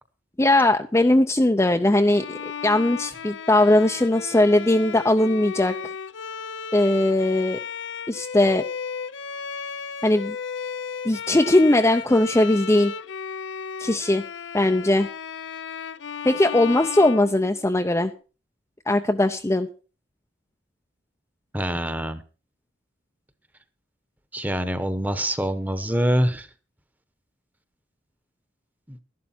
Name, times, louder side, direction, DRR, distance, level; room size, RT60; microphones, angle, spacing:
voice 1, 0.4-5.8 6.7-7.6 8.1-8.6 10.0-10.4 11.0-12.9 13.8-14.2 14.5-15.1 16.2-18.1 18.9-19.7, left 1 dB, 15° left, 5 dB, 0.5 m, -19 dB
Bowed string instrument, 2.1-18.0, left 6 dB, 85° left, 0.6 m, -35 dB
voice 2, 21.5-22.2 24.3-26.5 28.9-29.0, equal, 10° right, 11 dB, 1.0 m, -25 dB
13.0 x 11.5 x 4.4 m, 0.36 s
head